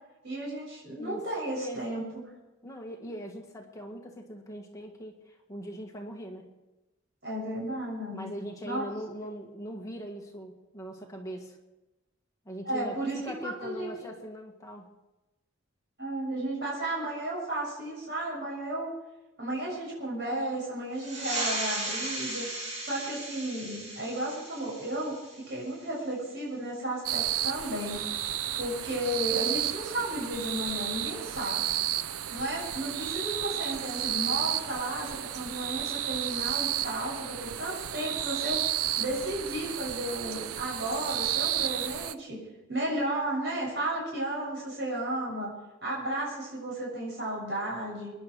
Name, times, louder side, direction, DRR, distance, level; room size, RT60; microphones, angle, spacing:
voice 1, 0.2-2.1 7.2-8.4 8.6-8.9 12.6-14.1 16.0-18.9 19.4-22.4 22.8-28.1 28.6-31.7 32.3-38.6 39.0-45.5 45.8-48.1, right 1 dB, 50° right, -5 dB, 7.0 m, -33 dB
voice 2, 1.5-1.9 2.6-6.5 8.1-11.6 12.5-14.9, equal, 15° left, 1 dB, 1.7 m, -41 dB
sound 1, 20.9-26.1, right 1 dB, 30° right, 4.0 m, -36 dB
sound 2, 27.0-42.1, right 11 dB, 90° right, 0.6 m, -32 dB
23.5 x 11.0 x 4.7 m, 1.1 s
head